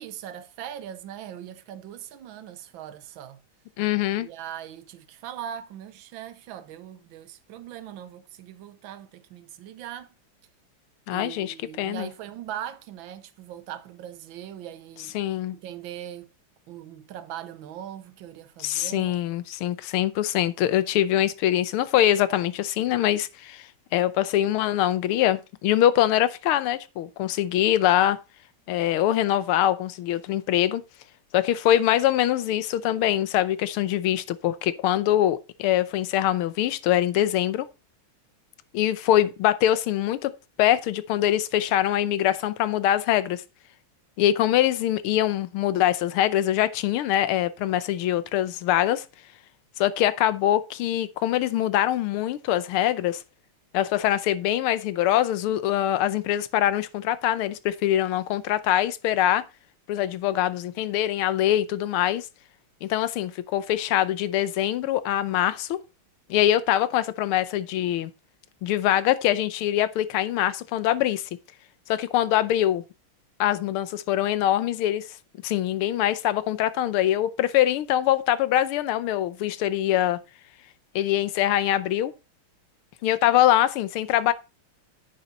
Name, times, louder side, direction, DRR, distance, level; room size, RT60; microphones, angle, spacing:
voice 1, 0.0-3.4 4.2-10.1 11.1-15.2 15.5-16.3 16.7-19.2, right 10 dB, 70° right, 1.6 m, -40 dB
voice 2, 3.8-4.3 11.1-12.1 15.1-15.6 18.6-28.2 28.7-30.8 31.3-37.7 38.7-40.3 40.6-43.4 44.2-49.0 49.8-53.2 53.7-59.4 59.9-62.3 62.8-65.8 66.3-68.1 68.6-71.3 71.9-72.8 73.4-75.2 75.4-80.2 80.9-82.1 83.0-84.3, left 12 dB, 85° left, 1.6 m, -23 dB
9.5 x 6.7 x 4.2 m
omnidirectional pair, 2.3 m